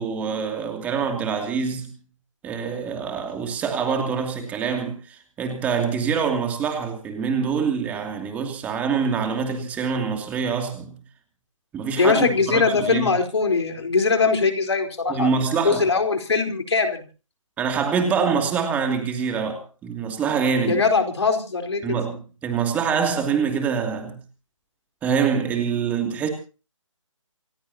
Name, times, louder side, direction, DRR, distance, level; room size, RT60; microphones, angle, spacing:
voice 1, 0.0-1.9 2.4-10.9 11.7-13.1 15.1-15.9 17.6-20.8 21.8-24.2 25.0-26.3, right 6 dB, 10° right, 2.7 m, -25 dB
voice 2, 12.0-17.0 20.7-22.0, left 4 dB, 55° left, 4.4 m, -21 dB
28.5 x 16.0 x 2.9 m
figure-of-eight pair, 145°, 17 cm